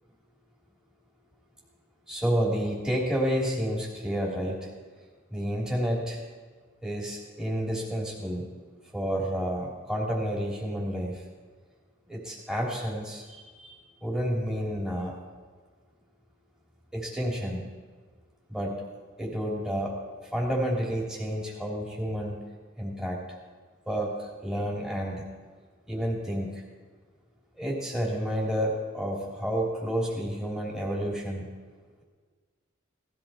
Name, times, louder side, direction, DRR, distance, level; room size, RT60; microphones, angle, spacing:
voice 1, 2.1-4.7 5.3-6.2 6.8-8.5 8.9-11.2 12.1-15.2 16.9-17.7 18.5-18.8 19.2-20.0 20.3-22.4 22.8-23.2 23.9-25.2 25.9-26.6 27.6-31.5, equal, 5° right, -4 dB, 3.1 m, -30 dB
18.0 x 15.0 x 4.4 m, 1.5 s
head